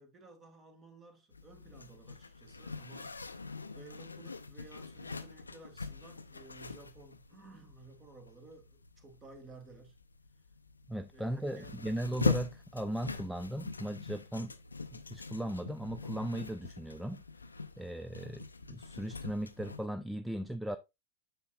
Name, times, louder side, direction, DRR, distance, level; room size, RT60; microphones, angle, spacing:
voice 1, 0.0-3.2 3.7-9.9 11.1-12.0, right 3 dB, 25° right, 1.7 m, -55 dB
Zipper (clothing), 1.3-19.9, left 4 dB, 80° left, 0.5 m, -42 dB
voice 2, 10.9-14.5 14.9-17.2 17.8-20.8, right 1 dB, 5° right, 0.4 m, -37 dB
8.1 x 6.1 x 2.3 m
figure-of-eight pair, 90°, 0 cm